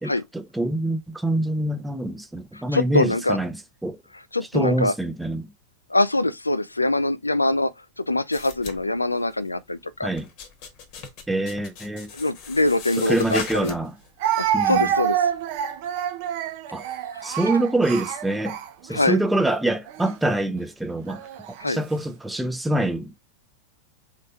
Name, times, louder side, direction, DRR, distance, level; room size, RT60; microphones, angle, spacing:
voice 1, 0.0-4.0 4.5-5.5 10.0-10.3 11.3-12.1 13.0-14.0 14.5-14.9 16.7-16.9 17.2-18.6 18.8-23.2, right 1 dB, 5° right, 0.6 m, -25 dB
voice 2, 2.7-3.4 4.3-4.9 5.9-7.7 8.0-10.1 12.1-13.7 14.3-15.2 18.9-19.2 21.6-21.8, left 2 dB, 85° left, 0.3 m, -23 dB
sound 1, 8.3-9.5 9.9-14.1 14.5-14.9, left 6 dB, 45° left, 1.1 m, -39 dB
Speech, 13.1-13.2 14.2-19.1 19.9-20.1 21.1-21.7, right 10 dB, 50° right, 0.6 m, -27 dB
3.8 x 3.3 x 3.4 m
figure-of-eight pair, 90°, 0 cm